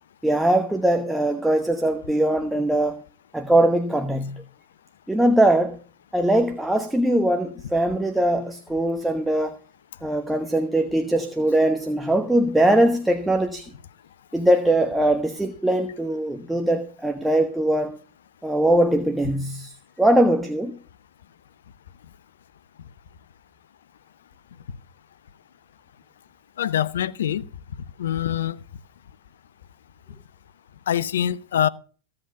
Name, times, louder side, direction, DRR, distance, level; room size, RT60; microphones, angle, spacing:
voice 1, 0.2-3.0 3.3-4.4 5.1-5.8 6.1-9.6 10.0-13.7 14.3-18.0 18.4-20.8, right 1 dB, 5° right, 1.0 m, -21 dB
voice 2, 26.6-27.5 27.8-28.6 30.9-31.7, left 10 dB, 65° left, 0.6 m, -24 dB
15.0 x 7.8 x 5.8 m
figure-of-eight pair, 90°, 0 cm